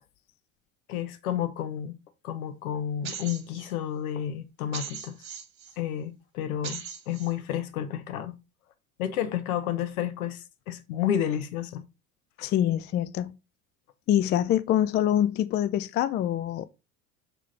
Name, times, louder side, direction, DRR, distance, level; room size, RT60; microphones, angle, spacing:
voice 1, 0.9-2.0 2.2-5.2 5.8-8.4 9.0-11.8 12.4-12.5, left 10 dB, 70° left, 1.1 m, -31 dB
sound 1, 3.0-3.7 4.7-5.7 6.6-7.3, right 7 dB, 40° right, 1.5 m, -39 dB
voice 2, 12.4-13.3 14.1-16.7, left 11 dB, 25° left, 0.3 m, -25 dB
7.4 x 3.5 x 4.1 m
figure-of-eight pair, 65°, 44 cm